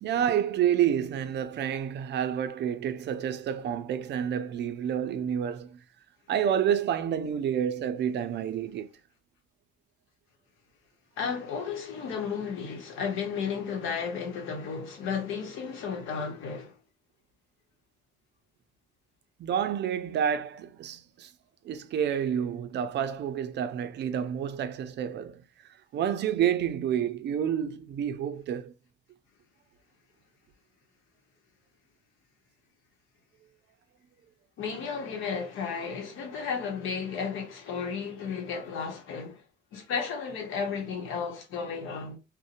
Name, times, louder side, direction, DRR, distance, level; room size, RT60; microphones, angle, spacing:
voice 1, 0.0-5.8 6.3-8.9 19.4-21.3 21.6-25.4 25.9-28.7, right 9 dB, 60° right, 0.4 m, -29 dB
voice 2, 11.2-16.7 34.6-39.4 39.7-42.2, left 6 dB, 90° left, 0.9 m, -33 dB
2.7 x 2.1 x 2.4 m
cardioid pair, 90°, 20 cm